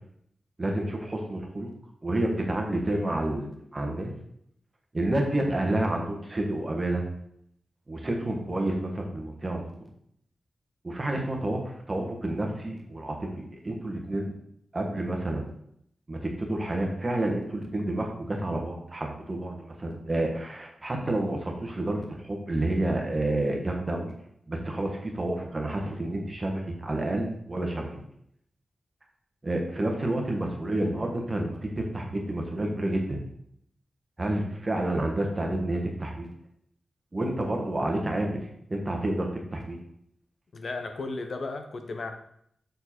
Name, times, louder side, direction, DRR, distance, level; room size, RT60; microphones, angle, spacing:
voice 1, 0.6-1.7 2.0-4.1 4.9-7.0 7.9-9.6 10.8-14.3 14.7-15.5 16.1-24.1 24.5-28.0 29.4-33.2 34.2-36.3 37.1-39.8, right 1 dB, 30° right, 2 dB, 1.2 m, -29 dB
voice 2, 40.5-42.1, left 3 dB, 55° left, 6 dB, 0.7 m, -34 dB
6.6 x 4.5 x 4.3 m, 0.70 s
wide cardioid pair, 120°, 0 cm